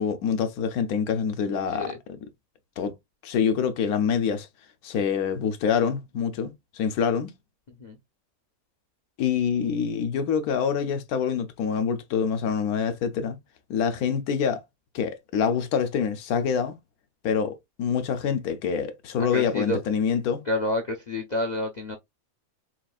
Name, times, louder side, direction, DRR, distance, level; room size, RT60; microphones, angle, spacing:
voice 1, 0.0-1.9 2.8-2.9 3.2-4.5 4.8-7.3 9.2-13.4 13.7-14.6 14.9-16.8 17.2-20.4, left 7 dB, 80° left, 1.2 m, -26 dB
voice 2, 7.7-8.0 19.2-19.8 20.5-22.0, left 1 dB, 45° left, 0.6 m, -29 dB
5.8 x 2.5 x 2.3 m
omnidirectional pair, 1.6 m